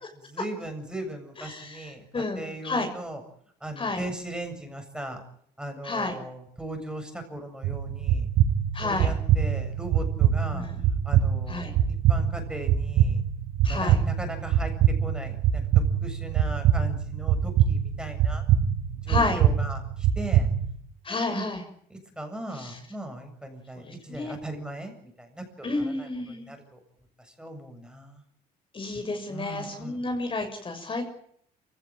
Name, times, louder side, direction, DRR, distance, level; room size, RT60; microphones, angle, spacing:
voice 1, 0.1-3.2 3.6-5.2 5.6-8.3 8.8-10.7 11.0-13.2 13.6-15.6 16.0-18.4 19.0-20.5 21.1-21.5 21.9-26.8 27.2-28.2 29.3-30.0, right 1 dB, 5° right, 5 dB, 7.6 m, -38 dB
voice 2, 1.4-2.9 3.8-4.0 5.8-6.1 8.7-9.1 10.5-10.8 11.5-11.7 13.6-14.0 19.1-19.4 21.0-21.6 22.6-22.8 23.8-24.3 25.6-26.5 28.7-31.1, left 3 dB, 30° left, 5 dB, 6.6 m, -31 dB
sound 1, 7.6-20.8, right 9 dB, 90° right, 5.6 m, -24 dB
28.0 x 17.0 x 9.2 m, 0.68 s
cardioid pair, 110°, 17 cm